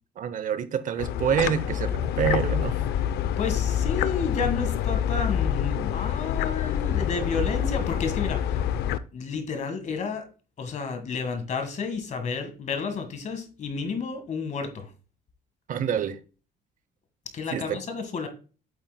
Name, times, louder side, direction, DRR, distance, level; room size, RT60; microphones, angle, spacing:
voice 1, 0.2-2.8 15.7-16.2 17.5-17.8, right 8 dB, 50° right, 0.7 m, -27 dB
sound 1, 1.0-9.0, left 10 dB, 75° left, 0.5 m, -26 dB
voice 2, 3.4-8.6 9.1-10.2 10.6-14.9 17.3-18.3, left 4 dB, 45° left, 1.6 m, -31 dB
8.5 x 7.6 x 2.2 m
cardioid pair, 110°, 17 cm